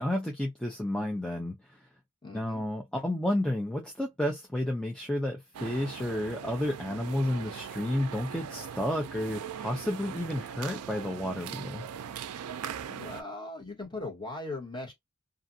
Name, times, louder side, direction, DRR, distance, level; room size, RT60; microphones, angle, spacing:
voice 1, 0.0-1.9 2.3-11.8, left 1 dB, 5° left, 0.4 m, -31 dB
voice 2, 2.2-2.7 12.9-14.9, left 2 dB, 20° left, 1.3 m, -39 dB
sound 1, 5.5-13.2, right 8 dB, 85° right, 0.4 m, -40 dB
2.5 x 2.5 x 2.6 m
head